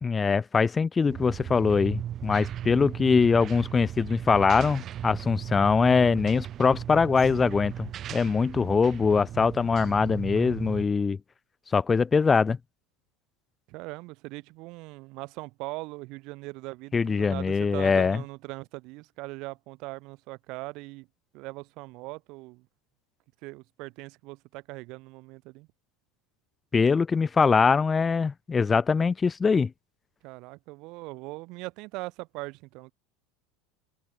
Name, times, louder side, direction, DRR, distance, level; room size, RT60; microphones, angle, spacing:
voice 1, 0.0-11.2 11.7-12.6 16.9-18.2 26.7-29.7, left 5 dB, 25° left, 2.4 m, -23 dB
sound 1, 1.1-10.9, right 11 dB, 40° right, 1.5 m, -37 dB
voice 2, 13.7-21.1 21.3-22.7 23.4-25.7 30.2-32.9, right 23 dB, 55° right, 5.8 m, -40 dB
hypercardioid pair, 80°, 0 cm